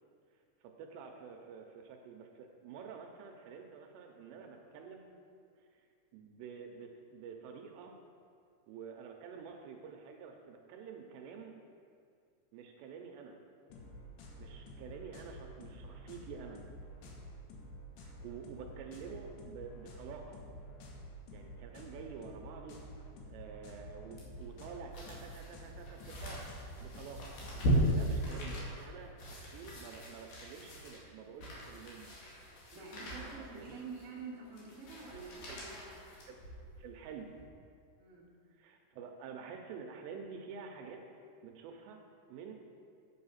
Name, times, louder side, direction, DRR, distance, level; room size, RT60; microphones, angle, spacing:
voice 1, 0.6-5.1 5.6-5.8 6.1-8.0 8.7-11.6 12.5-13.4 14.4-16.7 18.0-20.4 21.3-26.5 26.8-32.2 33.4-33.8 35.4-35.7 36.2-36.4 36.8-37.3 38.5-41.0 41.4-42.0 42.3-42.5, right 6 dB, 80° right, 3 dB, 2.7 m, -49 dB
sound 1, 13.7-28.7, equal, 75° left, 3.4 m, -50 dB
sound 2, 24.2-36.8 37.3-37.4, right 1 dB, 55° left, 3.0 m, -38 dB
voice 2, 32.7-36.0 38.0-38.3, right 4 dB, 40° right, -7 dB, 1.0 m, -47 dB
9.4 x 6.8 x 5.6 m, 2.3 s
omnidirectional pair, 5.3 m